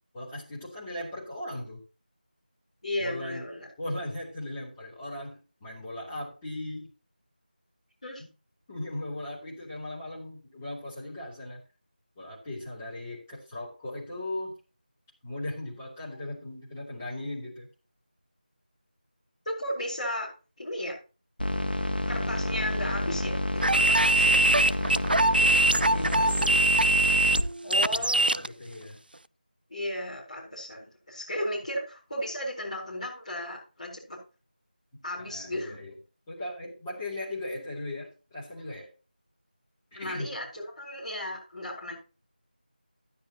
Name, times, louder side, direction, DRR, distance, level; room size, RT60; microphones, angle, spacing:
voice 1, 0.1-1.8 3.0-3.4 3.8-6.9 8.7-11.6 12.1-14.6 15.2-17.7 25.4-26.6 27.7-29.0 35.2-35.9 36.3-38.9 39.9-40.3, left 1 dB, 10° left, -7 dB, 3.2 m, -38 dB
voice 2, 2.8-3.7 8.0-8.2 19.4-20.3 20.6-21.0 22.1-24.3 27.6-28.5 29.7-34.2 35.0-35.8 39.9-42.0, left 1 dB, 40° left, -4 dB, 4.4 m, -35 dB
sound 1, 21.4-27.4, left 1 dB, 85° left, 2.0 m, -29 dB
sound 2, 23.6-28.5, right 2 dB, 75° right, 0.4 m, -23 dB
12.5 x 10.0 x 3.0 m, 0.33 s
figure-of-eight pair, 170°, 5 cm